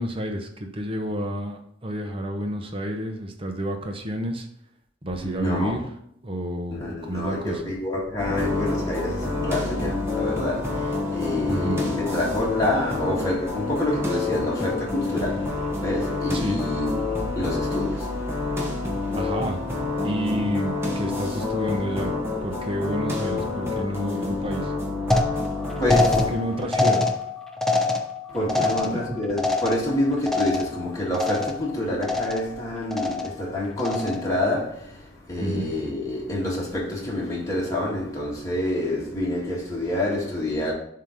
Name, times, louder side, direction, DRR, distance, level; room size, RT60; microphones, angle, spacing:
voice 1, 0.0-4.5 5.0-5.8 6.2-7.6 11.5-11.8 16.3-16.6 19.1-19.6 20.0-22.1 22.4-24.7 26.2-27.0 28.6-29.2 35.4-35.7, right 1 dB, 30° right, 0.8 m, -30 dB
voice 2, 5.2-5.8 6.7-19.2 25.7-26.9 28.3-40.7, left 1 dB, 15° left, 1.8 m, -28 dB
sound 1, 8.2-26.3, left 3 dB, 15° right, 1.2 m, -28 dB
sound 2, 25.1-30.9 31.1-31.7 32.0-32.6 32.9-33.4 33.8-34.3, left 2 dB, ahead, 0.5 m, -25 dB
7.3 x 2.9 x 5.0 m
head